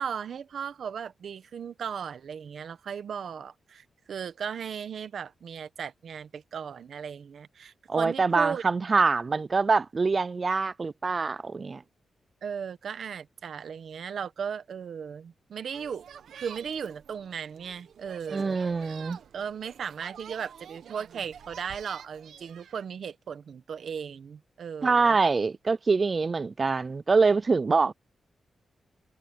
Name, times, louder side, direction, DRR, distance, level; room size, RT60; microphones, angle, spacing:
voice 1, 0.0-8.6 12.4-16.0 16.3-18.9 19.3-25.2, right 7 dB, 60° right, 1.3 m, -36 dB
voice 2, 7.9-11.8 18.3-19.2 24.8-27.9, right 4 dB, 30° right, 0.4 m, -24 dB
sound 1, 15.7-22.9, right 8 dB, 85° right, 1.5 m, -48 dB
wide cardioid pair, 150°, 0 cm